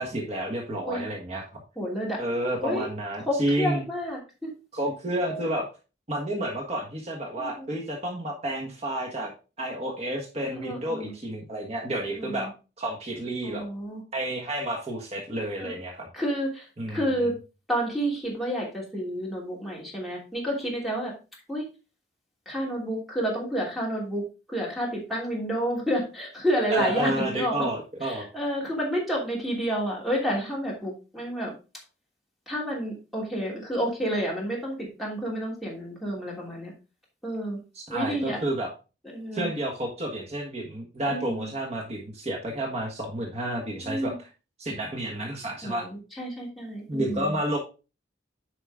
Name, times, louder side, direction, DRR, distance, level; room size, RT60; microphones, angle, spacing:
voice 1, 0.0-1.6 2.2-3.8 4.7-5.7 6.1-9.3 9.6-12.5 12.8-13.7 14.1-16.1 16.8-17.1 26.7-28.3 37.7-38.7 39.3-44.3 44.6-45.8 46.9-47.6, right 1 dB, 35° right, -1 dB, 1.4 m, -30 dB
voice 2, 1.7-2.2 2.6-2.9 3.3-4.5 5.2-5.5 7.4-7.7 10.4-11.1 12.0-12.5 13.4-14.0 15.6-15.8 16.1-17.3 17.7-21.1 21.5-21.6 22.5-24.2 24.5-27.7 28.0-31.5 32.5-36.7 37.2-37.6 37.9-38.4 39.0-39.5 41.1-41.5 43.7-44.2 45.6-47.4, equal, ahead, -3 dB, 2.9 m, -30 dB
9.5 x 5.1 x 3.7 m, 0.31 s
head